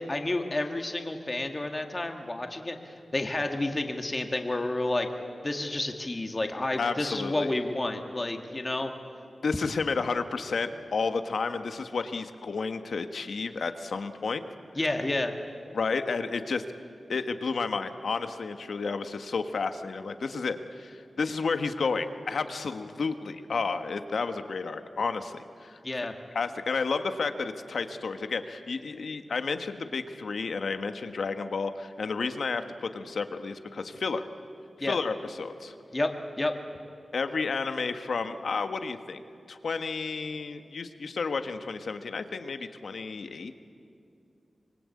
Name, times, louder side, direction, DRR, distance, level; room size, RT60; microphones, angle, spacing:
voice 1, 0.1-5.1 5.4-8.9 14.8-15.4 25.8-26.1 34.8-35.0 35.9-36.6, left 2 dB, 25° left, 5 dB, 1.9 m, -30 dB
voice 2, 6.8-7.5 9.4-14.4 15.7-16.6 17.1-25.8 26.3-34.3 34.9-35.7 37.1-39.2 39.5-43.6, left 4 dB, 75° left, 8 dB, 1.4 m, -31 dB
25.5 x 24.0 x 8.5 m, 2.5 s
wide cardioid pair, 125°, 0 cm